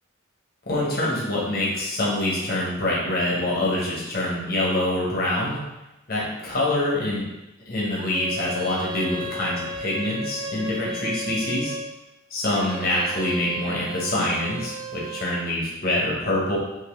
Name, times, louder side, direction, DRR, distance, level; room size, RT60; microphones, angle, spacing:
voice 1, 0.7-5.6 6.1-7.2 7.7-11.7 12.3-16.6, left 1 dB, 45° left, -5 dB, 1.3 m, -25 dB
sound 1, 7.9-11.9 12.4-15.5, right 1 dB, 25° right, 0.4 m, -35 dB
5.6 x 2.9 x 3.3 m, 0.97 s
head